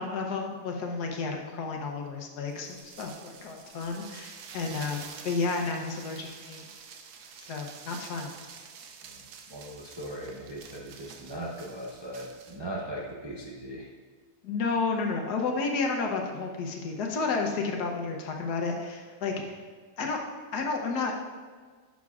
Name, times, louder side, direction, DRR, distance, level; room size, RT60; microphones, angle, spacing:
voice 1, 0.0-6.7 7.4-8.3 14.4-19.6 20.0-20.2 20.5-21.1, left 4 dB, 80° left, 2 dB, 1.4 m, -31 dB
sound 1, 2.5-12.6, right 6 dB, 80° right, 1.2 m, -48 dB
voice 2, 9.0-13.9, right 1 dB, 30° right, -3 dB, 0.5 m, -39 dB
10.0 x 6.2 x 2.4 m, 1.5 s
omnidirectional pair, 1.7 m